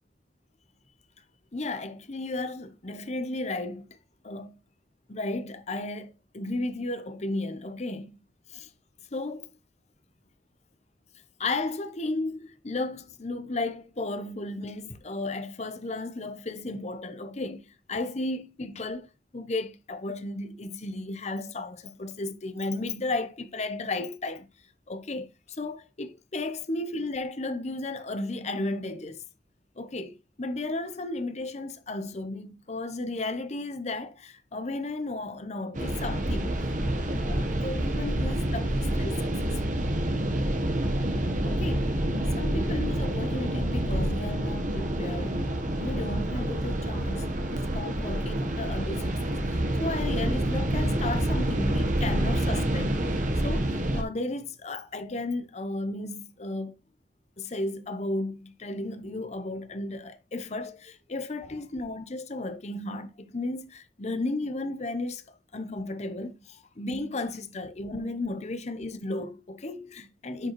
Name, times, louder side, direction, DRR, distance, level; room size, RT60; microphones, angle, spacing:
voice 1, 1.5-4.0 4.2-4.6 5.1-8.2 8.5-8.7 9.1-9.5 11.4-19.1 19.3-24.5 24.9-29.2 29.8-36.8 37.1-39.3 41.0-41.1 41.4-42.0 42.4-56.7 57.4-65.2 65.5-70.5, left 2 dB, 40° left, 0.8 m, -34 dB
sound 1, 35.7-54.0, right 1 dB, 45° right, 1.1 m, -28 dB
9.9 x 5.2 x 3.1 m
head